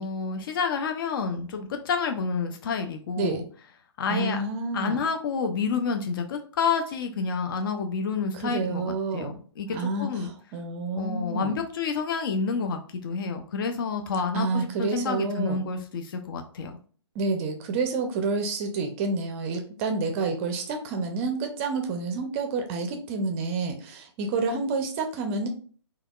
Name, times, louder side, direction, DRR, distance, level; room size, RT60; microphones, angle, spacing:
voice 1, 0.0-3.4 4.0-4.4 4.7-10.3 10.9-16.8, left 5 dB, 50° left, 5 dB, 0.5 m, -29 dB
voice 2, 4.1-5.0 8.4-9.3 9.7-11.5 14.3-15.6 17.2-25.5, right 3 dB, 25° right, 5 dB, 0.5 m, -29 dB
3.3 x 2.3 x 2.3 m, 0.41 s
figure-of-eight pair, 130°, 15 cm